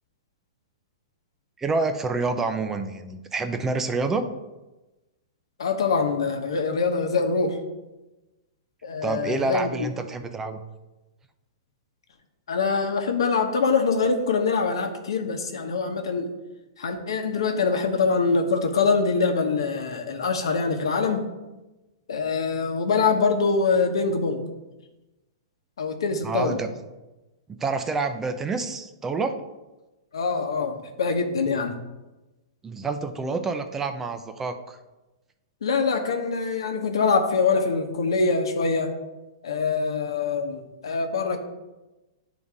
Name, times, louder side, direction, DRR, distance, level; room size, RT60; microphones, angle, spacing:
voice 1, 1.6-4.3 9.0-10.6 26.2-26.7 27.5-29.4 32.6-34.8, right 3 dB, 15° right, 8 dB, 0.5 m, -28 dB
voice 2, 5.6-7.6 8.8-9.9 12.5-16.3 16.8-21.2 22.1-24.4 25.8-26.6 30.1-31.8 35.6-38.9 39.4-41.4, left 4 dB, 85° left, 5 dB, 1.1 m, -24 dB
10.5 x 3.9 x 3.6 m, 1.1 s
hypercardioid pair, 145°, 3 cm